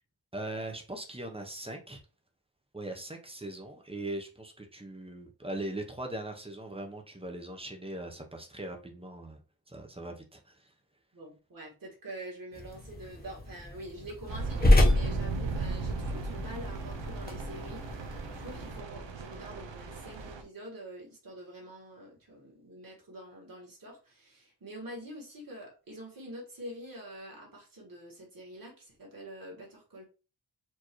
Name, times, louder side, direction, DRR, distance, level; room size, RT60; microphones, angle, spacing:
voice 1, 0.3-2.0 2.7-9.4 9.7-10.7, right 1 dB, 15° right, 0.8 m, -40 dB
voice 2, 11.1-30.0, right 1 dB, 50° right, 2.0 m, -46 dB
sound 1, 12.5-18.8, left 1 dB, 20° left, 1.0 m, -29 dB
sound 2, 14.3-20.4, right 3 dB, 75° right, 0.8 m, -36 dB
4.5 x 2.9 x 3.1 m
wide cardioid pair, 110°, 44 cm